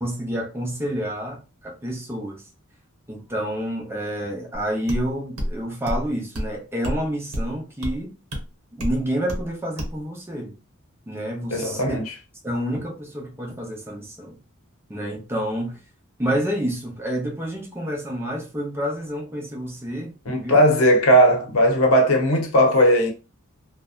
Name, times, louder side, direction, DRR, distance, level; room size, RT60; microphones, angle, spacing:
voice 1, 0.0-2.4 3.1-8.1 8.7-10.6 11.1-12.0 12.4-14.4 14.9-15.8 16.2-20.6, equal, 10° right, 0.6 m, -29 dB
sound 1, 4.5-4.6 4.9-5.1 5.4-5.5 5.9-6.1 6.4-6.5 6.8-7.0 7.3-7.5 7.8-7.9 8.3-8.4 8.8-9.0 9.3-9.5 9.8-10.0, equal, 70° right, 0.8 m, -27 dB
voice 2, 11.5-12.0 20.3-23.1, equal, 75° left, 0.8 m, -17 dB
2.6 x 2.1 x 2.2 m
head